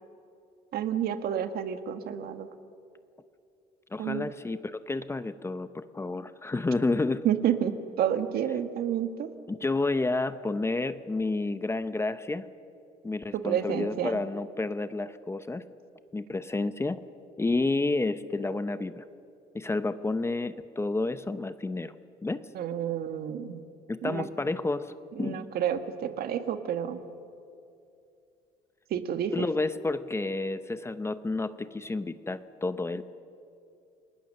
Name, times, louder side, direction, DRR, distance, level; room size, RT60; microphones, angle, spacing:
voice 1, 0.7-2.5 4.0-4.3 7.2-9.3 13.3-14.2 22.5-23.6 24.0-24.3 25.2-27.0 28.9-29.3, right 9 dB, 65° right, 9 dB, 1.5 m, -30 dB
voice 2, 3.9-7.3 9.5-12.4 13.0-15.6 16.1-17.0 17.4-19.0 19.5-21.9 22.2-22.4 23.9-24.9 25.2-25.4 29.3-33.1, left 3 dB, 15° left, 12 dB, 0.8 m, -30 dB
29.0 x 19.5 x 6.6 m, 2.6 s
cardioid pair, 110°, 17 cm